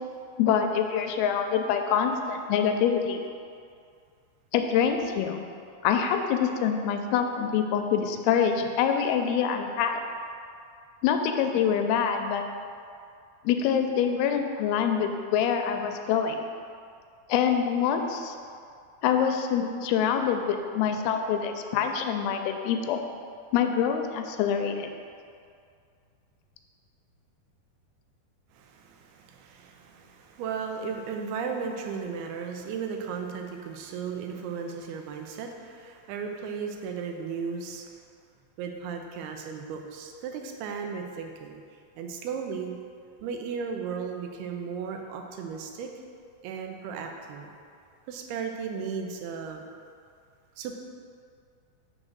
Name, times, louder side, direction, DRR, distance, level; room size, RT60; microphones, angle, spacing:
voice 1, 0.4-3.3 4.5-5.4 5.8-10.0 11.0-12.4 13.4-16.4 17.3-18.4 19.0-23.0 23.5-24.9, left 7 dB, 85° left, 5 dB, 2.5 m, -25 dB
voice 2, 28.5-37.9 38.6-41.6 42.0-42.7 43.2-45.9 46.4-47.5 48.1-49.6 50.6-50.8, right 6 dB, 85° right, 3 dB, 2.6 m, -35 dB
6.4 x 3.7 x 6.2 m, 2.3 s
omnidirectional pair, 4.4 m